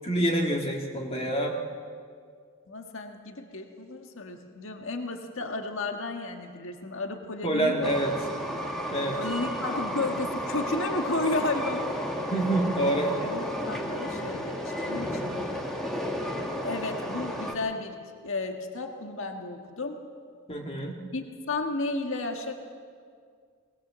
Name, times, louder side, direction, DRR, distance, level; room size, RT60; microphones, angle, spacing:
voice 1, 0.0-1.5 7.4-8.1 8.9-9.2 12.3-13.1 20.5-21.0, right 1 dB, 25° left, 0 dB, 2.0 m, -26 dB
voice 2, 2.7-7.9 9.2-12.2 13.2-14.6 14.8-15.5 16.6-18.0 18.2-20.0 21.1-22.5, left 2 dB, 60° left, 4 dB, 1.7 m, -33 dB
Train, 7.8-17.5, equal, ahead, 2.1 m, -32 dB
20.5 x 20.0 x 7.5 m, 2.1 s
head